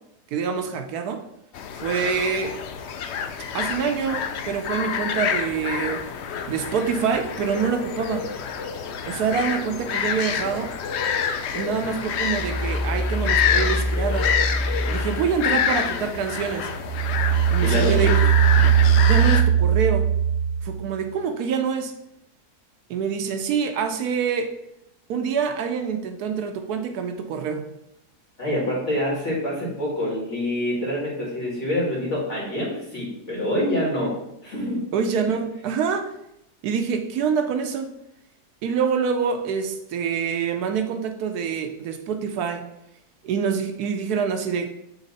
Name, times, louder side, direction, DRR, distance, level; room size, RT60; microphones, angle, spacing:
voice 1, 0.3-1.2 1.8-2.5 3.5-6.0 6.5-8.2 9.0-10.7 11.5-14.3 14.9-16.7 17.5-18.1 19.0-20.1 20.6-21.9 22.9-24.5 25.1-27.7 34.9-36.1 36.6-37.9 38.6-42.6 43.2-44.7, right 6 dB, 75° right, 6 dB, 1.1 m, -26 dB
sound 1, 1.5-19.4, left 7 dB, 90° left, 0.6 m, -27 dB
sound 2, 12.2-16.0 16.4-21.0, right 7 dB, 10° right, 2.1 m, -21 dB
voice 2, 17.6-18.1 18.6-18.8 28.4-34.1 34.4-34.8, left 1 dB, 45° left, -5 dB, 2.4 m, -26 dB
7.2 x 3.2 x 4.0 m, 0.82 s
omnidirectional pair, 1.7 m